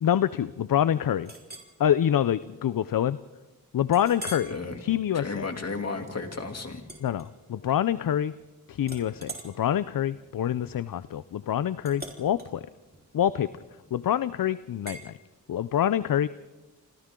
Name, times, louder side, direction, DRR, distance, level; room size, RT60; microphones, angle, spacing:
voice 1, 0.0-1.3 1.8-3.2 3.7-4.5 4.8-5.5 7.0-8.3 8.7-12.6 13.1-13.5 13.9-15.1 15.5-16.3, left 10 dB, 65° left, 15 dB, 0.6 m, -26 dB
Chink clink, 1.3-1.7 2.3-2.4 2.9-3.0 3.9-4.6 5.1-5.4 6.8-7.8 8.1-8.5 8.8-13.9 14.9-15.1, right 2 dB, 25° right, 4.3 m, -44 dB
voice 2, 4.5-4.8 5.1-6.8, left 3 dB, 45° left, 4 dB, 2.8 m, -33 dB
30.0 x 26.0 x 3.8 m, 1.1 s
cardioid pair, 65°, 36 cm